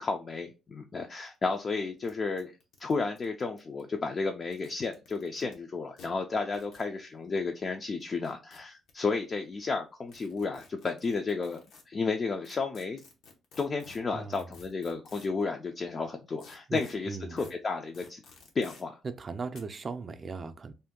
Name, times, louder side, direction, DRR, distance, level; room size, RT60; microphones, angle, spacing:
voice 1, 0.0-2.5 2.8-13.0 13.6-18.2 18.5-19.0, left 4 dB, 40° left, 0.4 m, -32 dB
sound 1, 1.3-1.4 1.5-1.6 2.0-2.1 2.4-3.8 4.4-5.5 6.0-6.1 6.5-6.9 8.0-8.9 10.1-11.8 12.4-15.4 16.4-16.9 17.4-17.5 17.9-18.8 19.5-19.6, left 4 dB, 80° left, 0.8 m, -53 dB
voice 2, 14.1-14.5 16.7-16.8 17.1-17.5 19.0-20.7, right 4 dB, 40° right, 0.4 m, -38 dB
2.6 x 2.2 x 3.6 m
cardioid pair, 90°, 0 cm